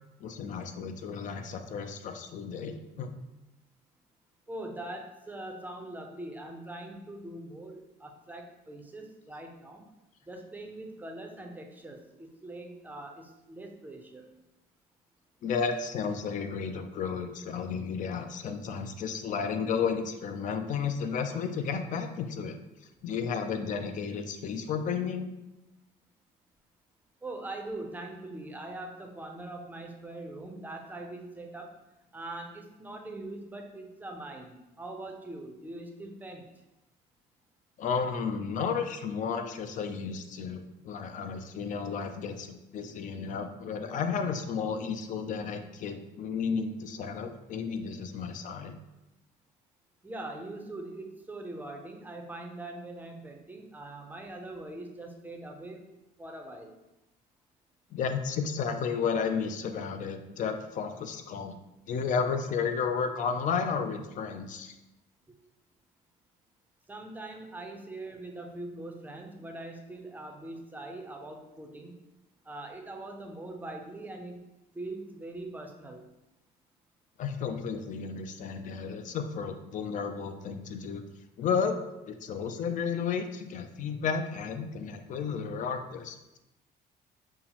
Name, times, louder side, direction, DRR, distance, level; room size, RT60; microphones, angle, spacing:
voice 1, 0.2-3.1 15.4-22.6 23.0-25.3 37.8-48.8 57.9-61.6 61.9-64.7 77.2-81.0 81.4-81.8 82.1-86.4, left 6 dB, 50° left, 8 dB, 0.4 m, -32 dB
voice 2, 4.5-9.8 10.3-14.3 27.2-31.8 32.1-36.4 50.0-55.8 56.2-56.7 66.9-72.0 72.4-74.4 74.7-76.1, right 2 dB, 10° right, 2 dB, 0.5 m, -42 dB
5.5 x 2.0 x 2.9 m, 0.94 s
cardioid pair, 110°, 17 cm